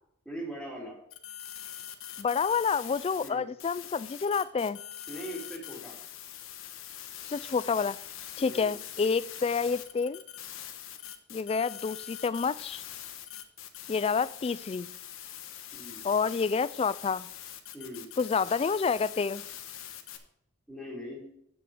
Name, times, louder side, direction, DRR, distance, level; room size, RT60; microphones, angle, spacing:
voice 1, 0.2-0.9 3.2-3.5 5.1-5.9 8.4-8.7 15.7-16.1 17.7-18.1 20.7-21.2, equal, ahead, 3.1 m, -40 dB
sound 1, 1.1-3.3 3.6-20.2, left 10 dB, 85° left, 1.3 m, -43 dB
voice 2, 2.2-4.8 7.3-8.0 8.4-10.2 11.3-12.8 13.9-14.9 16.0-17.3 18.2-19.4, left 5 dB, 30° left, 0.3 m, -28 dB
9.8 x 7.9 x 4.9 m
head